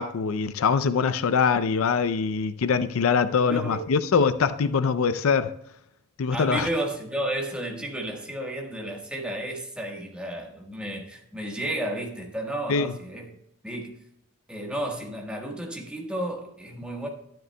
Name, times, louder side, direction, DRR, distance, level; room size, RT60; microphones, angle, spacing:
voice 1, 0.0-5.5 6.2-6.7 12.7-12.9, left 5 dB, 70° left, 0.4 m, -23 dB
voice 2, 3.5-3.9 6.3-13.4 13.6-14.0 14.5-17.1, right 1 dB, 5° right, 1.3 m, -32 dB
12.0 x 10.5 x 2.2 m
head